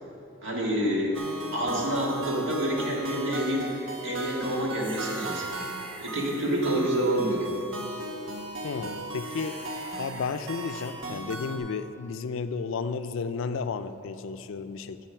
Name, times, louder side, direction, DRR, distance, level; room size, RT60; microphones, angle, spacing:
voice 1, 0.4-1.2 1.5-3.7 4.0-5.5 6.0-7.5, right 1 dB, 65° right, -3 dB, 1.9 m, -27 dB
sound 1, 1.1-11.6, right 2 dB, 85° right, 1.3 m, -37 dB
sound 2, 4.2-7.9 9.1-10.9, right 2 dB, 25° right, 1.7 m, -46 dB
voice 2, 8.6-9.6 10.0-15.1, left 5 dB, 70° left, 11 dB, 0.4 m, -33 dB
8.9 x 7.0 x 5.7 m, 3.0 s
head